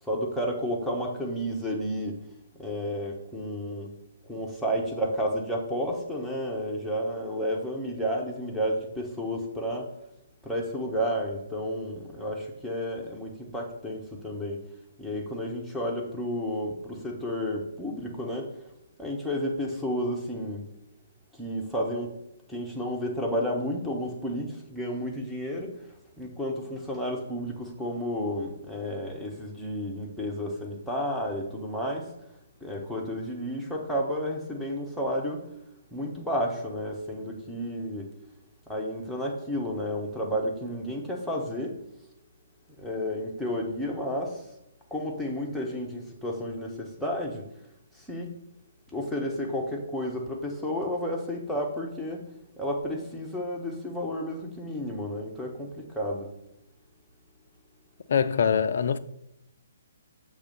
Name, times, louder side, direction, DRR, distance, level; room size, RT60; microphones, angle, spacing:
voice 1, 0.0-2.2 2.6-3.9 4.3-9.9 10.4-14.6 15.0-18.6 19.0-20.7 21.3-22.1 22.5-32.1 32.6-35.5 35.9-38.1 38.7-41.8 42.8-44.5 44.9-47.4 47.9-48.3 48.9-52.2 52.6-56.3, equal, ahead, 1.0 m, -31 dB
voice 2, 58.1-59.0, left 7 dB, 55° left, 0.4 m, -23 dB
6.6 x 3.1 x 5.6 m
figure-of-eight pair, 130°, 0 cm